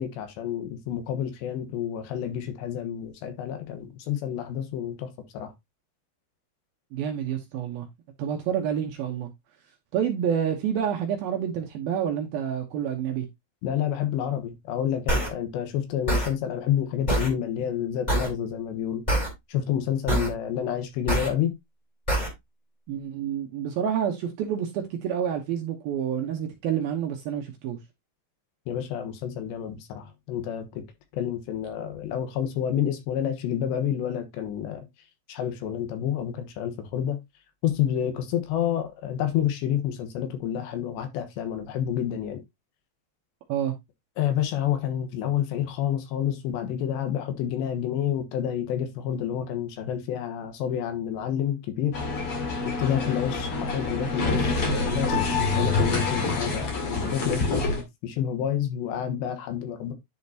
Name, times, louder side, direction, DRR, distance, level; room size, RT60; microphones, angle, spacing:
voice 1, 0.0-5.5 13.6-19.0 19.5-21.5 28.7-30.8 31.1-34.9 35.3-37.2 37.6-42.4 44.2-52.0 52.6-59.9, left 9 dB, 75° left, 3.3 m, -29 dB
voice 2, 6.9-7.9 8.2-9.3 9.9-13.3 20.1-20.3 22.9-27.8 43.5-43.7, right 9 dB, 70° right, 2.4 m, -28 dB
sound 1, 15.1-15.3 16.1-16.3 17.1-17.3 18.1-18.3 19.1-19.3 20.1-20.3 21.1-21.3 22.1-22.3, right 1 dB, 10° left, 2.9 m, -24 dB
sound 2, 51.9-57.8, left 3 dB, 45° left, 2.2 m, -26 dB
10.5 x 5.1 x 2.8 m
omnidirectional pair, 5.2 m